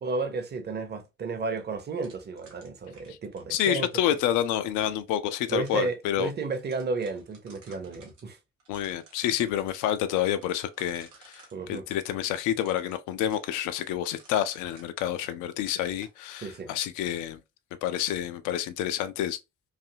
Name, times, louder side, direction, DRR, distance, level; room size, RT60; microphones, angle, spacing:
voice 1, 0.0-3.9 5.5-8.4 11.5-11.8 16.4-16.7, right 4 dB, 25° right, 0.7 m, -32 dB
sound 1, 2.0-4.4 5.1-5.9 6.2-6.3 6.6-8.2 8.6-9.7 10.3-11.6 12.3-15.4 15.7-16.2, right 4 dB, 80° right, 0.7 m, -56 dB
voice 2, 3.5-6.3 8.7-17.4 17.8-19.4, left 11 dB, 55° left, 0.4 m, -28 dB
2.6 x 2.4 x 2.6 m
figure-of-eight pair, 40°, 37 cm